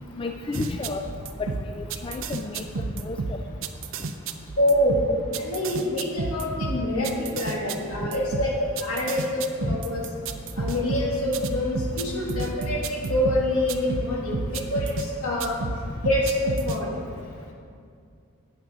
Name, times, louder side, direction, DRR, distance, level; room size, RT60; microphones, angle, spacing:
voice 1, 0.2-1.1 1.4-3.4 9.6-9.8, left 3 dB, 25° left, 5 dB, 0.3 m, -32 dB
sound 1, 0.5-15.1 15.4-16.8, right 3 dB, 60° right, 0.5 m, -31 dB
voice 2, 4.6-5.1 5.4-10.0 10.6-15.5 16.0-16.9, left 1 dB, 75° left, -3 dB, 2.1 m, -26 dB
9.0 x 6.1 x 6.2 m, 2.3 s
head